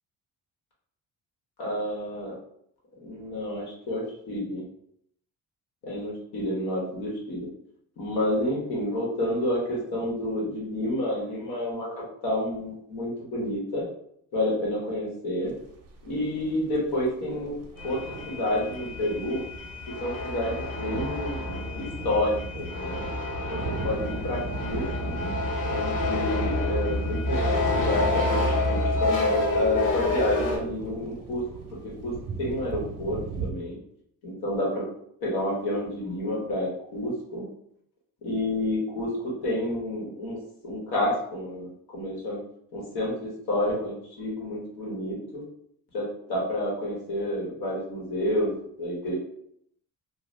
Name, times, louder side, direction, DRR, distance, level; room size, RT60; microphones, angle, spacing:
voice 1, 1.6-2.3 3.0-4.6 5.8-7.5 8.0-13.8 14.3-15.5 16.0-17.5 17.8-19.4 20.0-21.4 21.7-23.0 23.5-23.6 23.8-24.4 24.7-24.8 25.1-25.3 25.7-28.4 28.7-31.4 32.0-32.1 32.4-33.8 34.2-34.9 35.2-37.4 38.2-40.4 40.6-42.4 42.7-45.4 45.9-49.1, left 1 dB, 90° left, -3 dB, 1.3 m, -29 dB
sound 1, 15.5-33.5, right 4 dB, 45° right, 0.6 m, -39 dB
sound 2, 17.8-30.6, left 2 dB, 55° left, 1.1 m, -28 dB
2.6 x 2.3 x 3.3 m, 0.70 s
cardioid pair, 100°, 37 cm